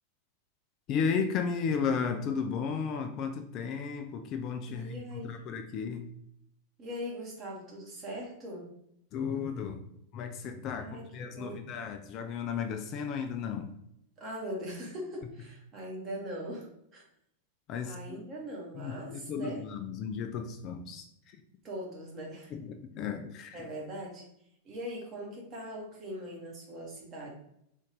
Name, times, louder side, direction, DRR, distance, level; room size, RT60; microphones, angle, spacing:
voice 1, 0.9-6.2 9.1-9.8 10.1-13.7 17.7-18.2 18.7-21.4 22.5-23.7, left 6 dB, 35° left, 6 dB, 0.4 m, -34 dB
voice 2, 4.7-5.5 6.8-8.7 10.8-11.0 11.3-11.6 14.2-17.0 17.8-19.6 21.6-22.5 23.5-24.2 24.6-27.3, equal, 30° right, -2 dB, 1.3 m, -41 dB
3.7 x 2.7 x 3.4 m, 0.76 s
figure-of-eight pair, 90°, 0 cm